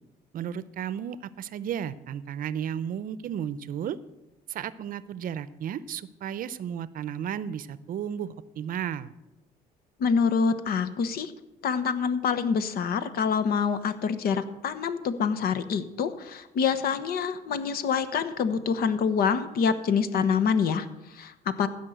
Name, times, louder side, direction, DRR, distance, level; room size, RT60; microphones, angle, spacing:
voice 1, 0.3-4.0 4.5-9.1, right 9 dB, 55° right, 17 dB, 0.6 m, -33 dB
voice 2, 10.0-11.3 11.6-21.7, left 6 dB, 65° left, 11 dB, 1.1 m, -26 dB
15.0 x 5.4 x 7.9 m, 0.97 s
cardioid pair, 110°, 17 cm